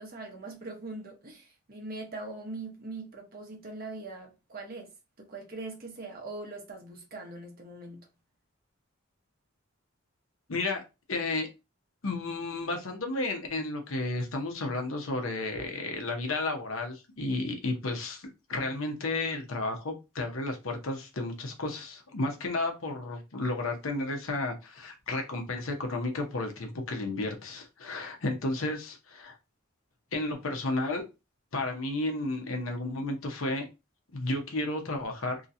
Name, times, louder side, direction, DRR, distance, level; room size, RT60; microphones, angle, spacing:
voice 1, 0.0-4.9 5.2-8.1, right 2 dB, 45° right, 1.0 m, -41 dB
voice 2, 10.5-10.8 11.1-11.5 12.0-29.4 30.1-31.0 31.5-33.7 34.1-35.4, left 2 dB, 85° left, 0.9 m, -32 dB
2.9 x 2.8 x 2.6 m
head